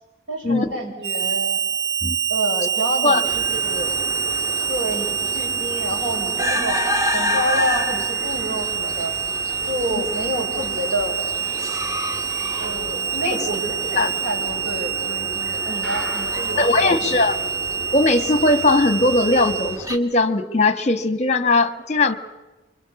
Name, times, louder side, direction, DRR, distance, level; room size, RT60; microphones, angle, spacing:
voice 1, 0.3-1.6 2.3-3.9 4.7-9.1 9.7-11.2 12.6-17.3, right 1 dB, 85° right, 1 dB, 7.1 m, -28 dB
Harmonica, 1.0-19.8, right 7 dB, 65° right, 1.0 m, -26 dB
sound 1, 3.2-20.0, left 1 dB, 15° right, 2.1 m, -31 dB
sound 2, 15.8-16.7 17.1-17.2 17.4-17.5 18.0-18.1, left 2 dB, 5° left, 2.4 m, -37 dB
voice 2, 16.6-17.4 17.9-22.1, left 2 dB, 35° left, 11 dB, 1.6 m, -19 dB
27.0 x 24.5 x 7.2 m, 1.1 s
head